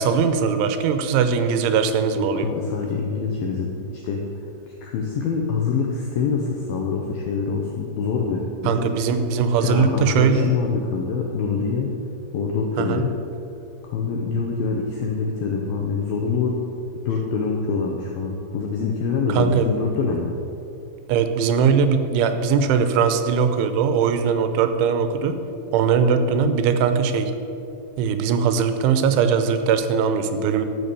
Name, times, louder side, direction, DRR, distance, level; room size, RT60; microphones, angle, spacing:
voice 1, 0.0-2.5 8.7-10.5 12.8-13.0 19.3-19.7 21.1-25.4 25.7-27.3 28.0-30.7, right 6 dB, 80° right, 9 dB, 3.1 m, -20 dB
voice 2, 2.2-4.3 4.7-8.9 9.6-11.9 12.3-13.1 13.8-16.6 17.0-20.4, left 5 dB, 90° left, 0 dB, 2.0 m, -25 dB
12.0 x 7.3 x 6.8 m, 2.8 s
omnidirectional pair, 5.6 m